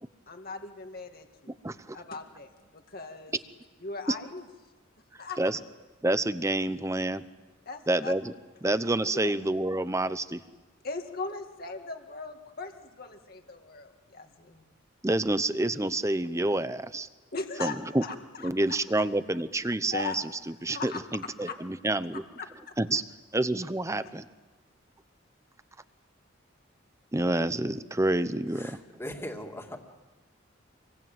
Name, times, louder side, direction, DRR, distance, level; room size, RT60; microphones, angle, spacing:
voice 1, 0.3-1.5 1.9-3.4 3.8-4.5 5.2-5.4 7.7-8.1 9.1-9.4 10.8-14.6 17.3-18.5 19.9-20.3 20.7-21.0 21.4-21.5 22.4-22.5, left 3 dB, 50° left, 5 dB, 2.1 m, -39 dB
voice 2, 1.6-2.0 5.4-5.6 6.0-7.2 7.9-8.3 8.6-10.4 15.0-17.1 17.6-18.0 18.4-20.2 20.6-22.2 22.8-23.0 23.3-24.2 27.1-28.7, right 2 dB, 15° right, 13 dB, 0.8 m, -28 dB
voice 3, 28.5-29.8, left 1 dB, 10° left, 3 dB, 2.6 m, -39 dB
27.0 x 22.5 x 9.2 m, 1.2 s
head